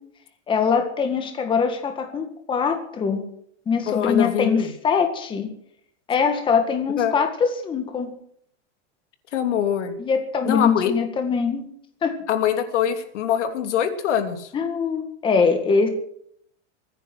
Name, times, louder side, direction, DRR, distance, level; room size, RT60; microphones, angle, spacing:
voice 1, 0.5-3.2 3.7-5.5 6.1-8.1 10.0-11.6 12.0-12.2 14.5-15.9, left 5 dB, 15° left, 5 dB, 1.8 m, -22 dB
voice 2, 3.9-4.7 7.0-7.1 9.3-9.9 10.4-10.9 12.3-14.5, left 9 dB, 75° left, 7 dB, 3.1 m, -23 dB
23.0 x 10.0 x 6.3 m, 0.66 s
supercardioid pair, 165°, 36 cm